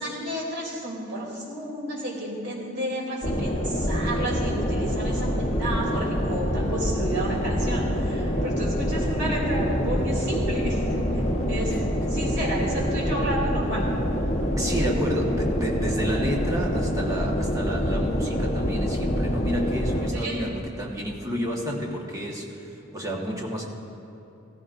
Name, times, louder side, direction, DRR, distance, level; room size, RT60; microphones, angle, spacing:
voice 1, 0.0-11.2 11.5-11.7 12.1-13.8 14.7-14.9 20.1-20.4, right 1 dB, 65° right, -3 dB, 3.1 m, -31 dB
sound 1, 3.2-20.1, equal, 35° left, 1.1 m, -26 dB
voice 2, 14.6-23.7, equal, 15° right, -1 dB, 1.4 m, -30 dB
17.0 x 14.5 x 2.6 m, 2.8 s
head